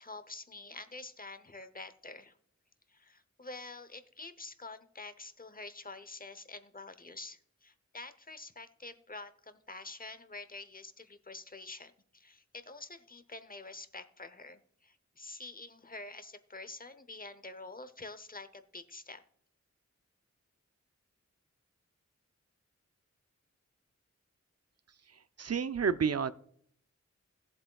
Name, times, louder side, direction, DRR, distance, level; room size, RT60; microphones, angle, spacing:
voice 1, 0.0-2.3 2.9-19.2, left 3 dB, 30° left, 11 dB, 0.7 m, -47 dB
voice 2, 25.4-26.3, right 6 dB, 60° right, 14 dB, 0.5 m, -29 dB
17.0 x 7.7 x 2.3 m, 0.65 s
wide cardioid pair, 50°, 29 cm